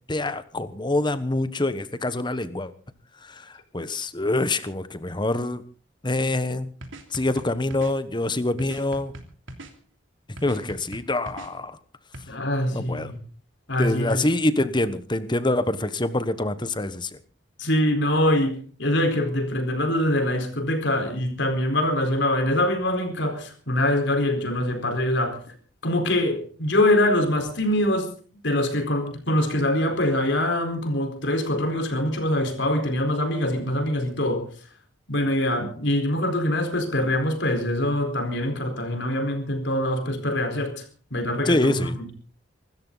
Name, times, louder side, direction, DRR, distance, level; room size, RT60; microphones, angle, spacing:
voice 1, 0.1-2.7 3.2-5.6 6.0-6.7 7.1-9.1 10.4-11.8 12.7-13.1 13.8-17.1 41.4-42.0, left 2 dB, 25° left, 13 dB, 1.2 m, -25 dB
sound 1, 6.8-7.9 8.6-9.7 10.4-11.5 12.1-12.2, right 1 dB, 90° right, 3.1 m, -40 dB
voice 2, 12.3-13.2 13.7-14.2 17.6-25.4 25.8-28.1 28.4-34.4 35.1-40.8 41.1-42.0, left 1 dB, 65° left, 5 dB, 4.4 m, -24 dB
25.0 x 13.5 x 4.0 m, 0.40 s
head